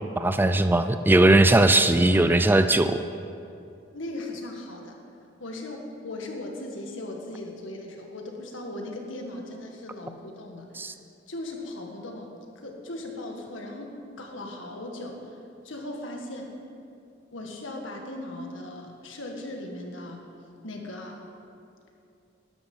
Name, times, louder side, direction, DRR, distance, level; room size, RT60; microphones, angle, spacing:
voice 1, 0.2-3.0 10.8-10.9, right 2 dB, 10° right, 10 dB, 0.3 m, -19 dB
voice 2, 3.9-5.0 5.4-10.7 11.3-15.4 15.6-16.5 17.3-20.3 20.6-21.2, left 1 dB, 75° left, 1 dB, 1.8 m, -38 dB
12.5 x 11.5 x 5.6 m, 2.6 s
head